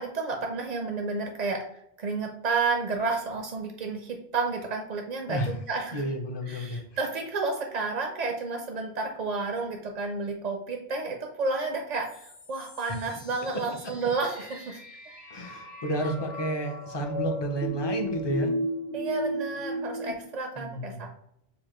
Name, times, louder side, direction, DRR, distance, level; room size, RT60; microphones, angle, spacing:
voice 1, 0.0-1.6 2.0-6.0 6.5-14.8 18.9-21.1, right 4 dB, 50° right, 3 dB, 0.5 m, -31 dB
voice 2, 5.9-6.8 12.9-13.0 15.3-18.5 20.6-21.0, right 1 dB, 30° left, 3 dB, 0.6 m, -31 dB
sound 1, 12.0-20.1, equal, 70° left, 1.3 m, -35 dB
7.0 x 2.4 x 3.0 m, 0.78 s
omnidirectional pair, 1.1 m